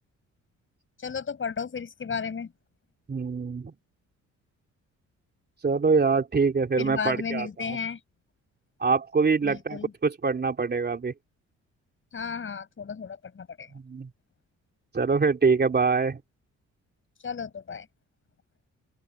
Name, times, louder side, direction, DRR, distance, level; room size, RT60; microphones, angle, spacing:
voice 1, 1.0-2.5 6.8-8.0 9.4-9.9 12.1-13.7 17.2-17.9, left 6 dB, 40° left, 6.9 m, -33 dB
voice 2, 3.1-3.7 5.6-7.8 8.8-11.1 13.7-14.1 14.9-16.2, right 4 dB, 35° right, 3.3 m, -24 dB
open air
cardioid pair, 90°, 30 cm